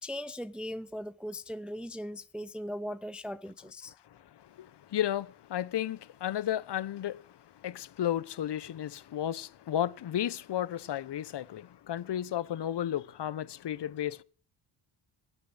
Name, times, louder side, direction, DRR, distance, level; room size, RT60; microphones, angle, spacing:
voice 1, 0.0-3.9, equal, ahead, 0.6 m, -39 dB
voice 2, 4.1-14.2, left 11 dB, 55° left, 1.0 m, -33 dB
17.5 x 8.4 x 8.0 m
cardioid pair, 85°, 49 cm